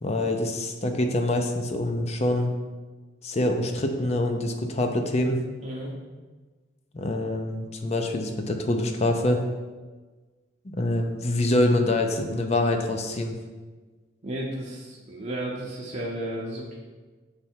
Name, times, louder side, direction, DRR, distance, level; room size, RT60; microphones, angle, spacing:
voice 1, 0.0-2.5 3.2-5.4 6.9-9.4 10.6-13.4, left 1 dB, 35° left, 5 dB, 0.6 m, -25 dB
voice 2, 14.2-16.8, right 1 dB, 35° right, -3 dB, 0.7 m, -33 dB
6.8 x 3.4 x 4.4 m, 1.3 s
head